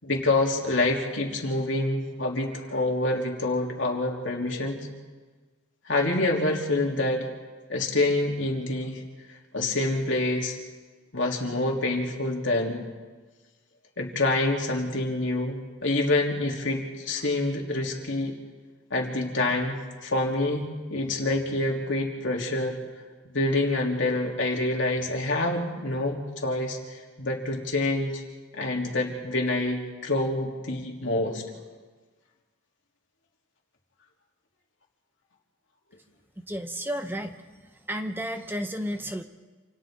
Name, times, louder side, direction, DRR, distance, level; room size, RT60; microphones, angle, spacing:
voice 1, 0.0-4.8 5.9-7.3 7.7-9.0 9.5-10.6 11.1-12.8 14.0-18.3 18.9-19.8 20.0-22.8 23.3-28.2 28.5-31.4, left 2 dB, 65° left, -1 dB, 3.5 m, -27 dB
voice 2, 36.5-37.4 37.9-39.2, equal, 10° right, 6 dB, 0.8 m, -32 dB
28.5 x 27.5 x 3.9 m, 1.4 s
head